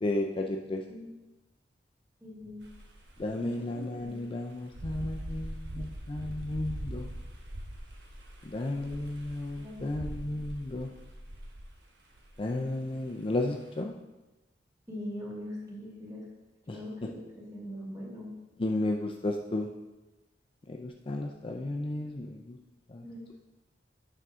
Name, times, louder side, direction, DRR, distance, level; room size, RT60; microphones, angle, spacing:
voice 1, 0.0-0.8 3.2-7.1 8.5-10.9 12.4-13.9 16.7-16.8 18.6-19.7 20.7-22.6 22.9-23.0, left 2 dB, 30° left, 2 dB, 0.4 m, -33 dB
voice 2, 2.2-2.7 3.3-4.1 9.6-9.8 10.2-10.4 14.9-16.3 16.7-18.3 23.0-23.3, left 1 dB, 20° right, -5 dB, 2.4 m, -42 dB
sound 1, 2.6-3.2 4.0-4.1 4.5-11.7 12.2-12.6, right 1 dB, 75° right, 1.2 m, -42 dB
9.3 x 6.1 x 3.7 m, 1.1 s
head